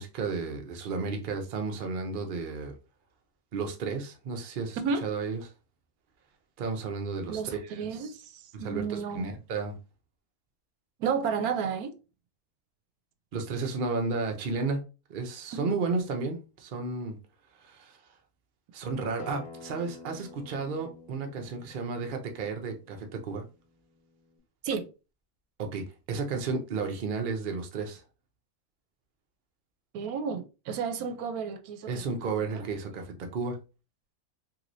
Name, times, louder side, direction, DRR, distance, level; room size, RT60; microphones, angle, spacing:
voice 1, 0.0-2.8 3.5-5.4 6.6-8.1 8.5-9.8 13.3-14.8 15.1-17.2 17.6-18.0 18.7-23.4 25.6-28.0 31.9-33.6, right 4 dB, 55° right, 0.6 m, -33 dB
voice 2, 4.8-5.1 7.3-9.3 11.0-11.9 15.5-15.7 24.6-24.9 29.9-32.0 32.4-32.7, right 6 dB, 80° right, 1.0 m, -32 dB
Acoustic guitar, 19.2-24.4, left 4 dB, 90° left, 1.2 m, -50 dB
3.0 x 2.9 x 2.6 m
omnidirectional pair, 1.6 m